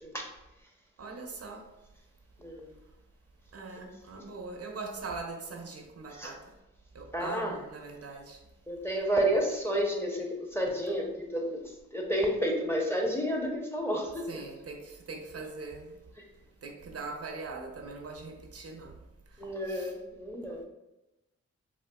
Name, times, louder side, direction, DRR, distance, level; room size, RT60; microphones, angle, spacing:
voice 1, 0.0-0.3 2.4-2.7 6.1-6.3 7.1-7.6 8.7-14.3 19.4-20.6, equal, 10° left, 0.6 m, -31 dB
voice 2, 1.0-1.7 3.5-6.5 6.9-8.5 14.3-19.0 19.3-19.9, right 3 dB, 55° right, 0.5 m, -42 dB
3.7 x 2.3 x 2.2 m
cardioid pair, 50°, 29 cm